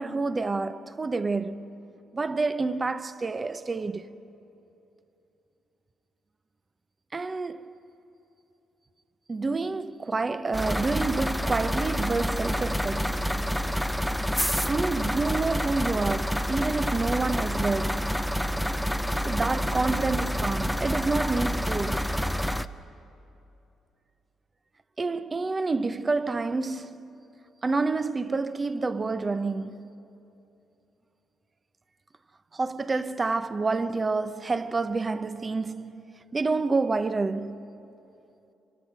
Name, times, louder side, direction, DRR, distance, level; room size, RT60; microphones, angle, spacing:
voice 1, 0.0-1.7 2.1-4.1 7.1-7.7 9.3-13.3 14.7-18.2 19.2-22.3 25.0-27.2 27.6-29.9 32.5-36.0 36.3-37.6, right 3 dB, 30° right, 0.8 m, -28 dB
sound 1, 10.5-22.7, equal, ahead, 0.6 m, -28 dB
27.0 x 24.5 x 6.0 m
cardioid pair, 90°, 0 cm